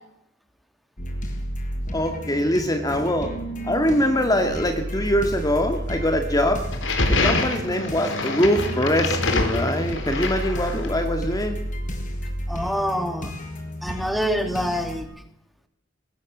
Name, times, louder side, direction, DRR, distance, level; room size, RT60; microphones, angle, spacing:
sound 1, 1.0-15.0, equal, 45° left, 6.0 m, -31 dB
voice 1, 1.9-3.3 3.6-6.6 7.1-11.6, equal, 20° left, 5 dB, 2.2 m, -23 dB
sound 2, 6.7-11.0, left 3 dB, 80° left, 4.3 m, -26 dB
voice 2, 12.5-13.3 13.8-15.1, equal, ahead, 6 dB, 2.7 m, -26 dB
22.0 x 21.0 x 7.5 m, 0.76 s
head